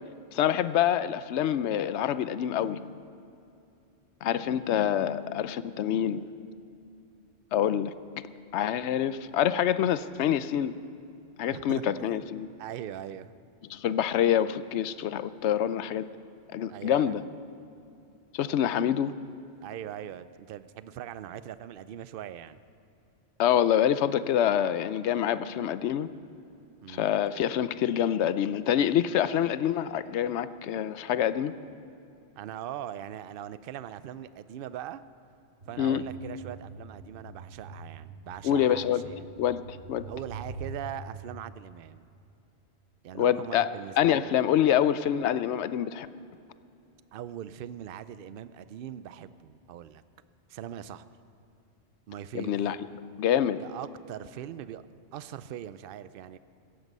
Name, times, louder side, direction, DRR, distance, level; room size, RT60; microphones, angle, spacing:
voice 1, 0.3-3.0 4.2-6.3 7.5-7.9 8.5-10.7 11.4-12.5 13.7-16.1 16.5-17.2 18.3-19.1 23.4-26.1 26.9-31.5 35.8-36.0 38.4-39.1 39.4-40.1 43.1-43.7 44.0-46.1 52.3-52.8 53.2-53.6, left 10 dB, 80° left, 14 dB, 0.9 m, -26 dB
voice 2, 11.5-12.2 12.6-13.3 16.7-17.1 19.6-22.6 26.8-27.1 32.4-35.0 35.7-39.3 40.1-42.0 43.0-44.3 47.1-50.0 50.5-51.0 52.1-52.6 53.6-54.8 55.1-56.4, right 10 dB, 60° right, 15 dB, 0.7 m, -41 dB
sound 1, 35.6-40.6, right 3 dB, 85° right, 3.5 m, -45 dB
16.5 x 14.5 x 5.4 m, 2.7 s
omnidirectional pair, 1.1 m